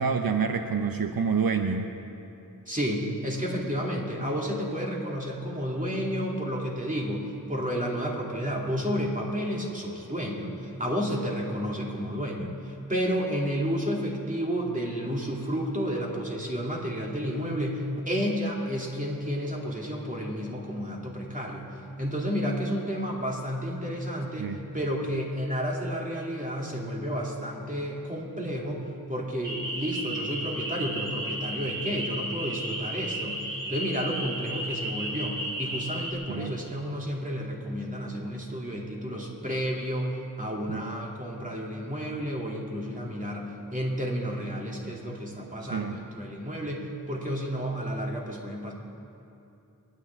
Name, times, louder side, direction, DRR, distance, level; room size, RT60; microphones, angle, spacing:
voice 1, 0.0-1.9 24.4-24.6 36.3-36.6 40.7-40.8 45.7-46.0, right 5 dB, 85° right, 6 dB, 0.8 m, -27 dB
voice 2, 2.7-33.4 33.7-48.7, equal, 25° right, -2 dB, 2.7 m, -31 dB
sound 1, 29.4-36.1, right 1 dB, 60° right, 2.2 m, -34 dB
29.0 x 10.0 x 3.6 m, 2.7 s
wide cardioid pair, 55°, 34 cm